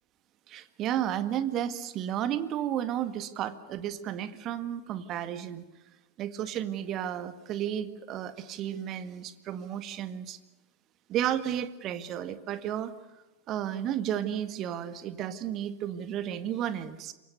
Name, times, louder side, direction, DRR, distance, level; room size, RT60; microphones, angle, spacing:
voice 1, 0.5-5.7 6.2-10.4 11.1-12.9 13.5-17.1, right 10 dB, 35° right, 11 dB, 1.8 m, -32 dB
28.0 x 23.5 x 6.9 m, 1.1 s
figure-of-eight pair, 90°, 0 cm